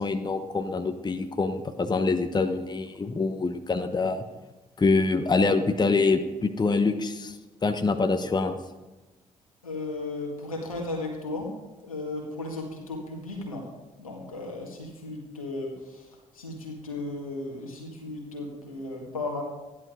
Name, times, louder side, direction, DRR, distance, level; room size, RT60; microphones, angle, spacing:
voice 1, 0.0-4.2 4.8-7.4 7.6-8.6, left 3 dB, 25° left, 8 dB, 1.1 m, -25 dB
voice 2, 9.6-11.5 11.8-13.7 14.0-16.1 16.3-19.4, left 2 dB, 85° left, 0 dB, 2.1 m, -35 dB
13.0 x 11.0 x 4.9 m, 1.1 s
figure-of-eight pair, 45°, 17 cm